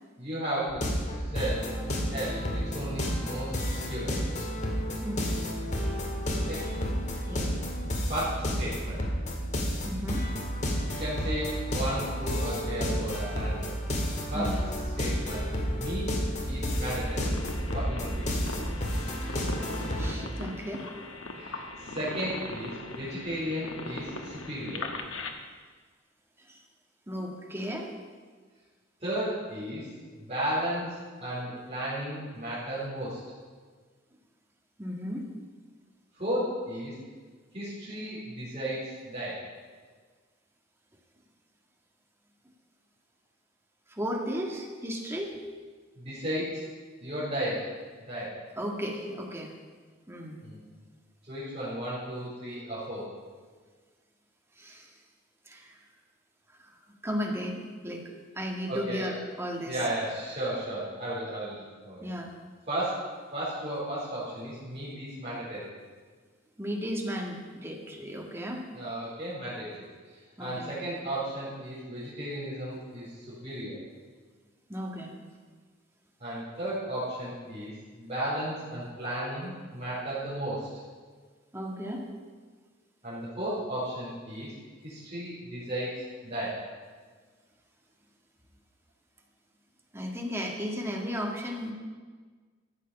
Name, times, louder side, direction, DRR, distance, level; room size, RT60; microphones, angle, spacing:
voice 1, 0.2-3.5 3.8-4.1 6.5-6.6 8.0-9.0 10.9-13.7 14.3-14.5 15.0-15.4 15.7-16.1 16.4-17.3 17.7-18.4 21.3-24.8 29.0-33.2 36.2-37.0 37.5-39.4 45.9-46.6 47.0-47.7 48.1-48.3 50.4-50.7 51.3-53.0 58.7-59.1 59.6-62.1 62.7-63.0 63.3-65.7 68.7-69.7 70.1-73.8 76.2-77.7 78.0-80.7 83.0-84.5 84.8-86.6, right 1 dB, 35° right, -11 dB, 4.3 m, -34 dB
sound 1, 0.7-20.1, equal, 35° left, 2.0 m, -31 dB
voice 2, 5.0-5.3 7.3-7.6 9.8-10.2 14.3-14.6 20.0-20.8 26.5-26.6 27.1-27.9 34.8-35.3 43.9-45.3 48.6-49.5 50.1-50.4 54.6-54.9 55.5-55.8 57.0-58.0 58.4-59.8 62.0-62.3 66.6-68.6 70.4-70.7 74.7-75.1 81.5-82.1 89.9-91.7, equal, 15° right, 0 dB, 1.8 m, -34 dB
sound 2, 16.7-25.3, left 2 dB, 75° left, 1.3 m, -40 dB
13.5 x 8.2 x 7.0 m, 1.5 s
head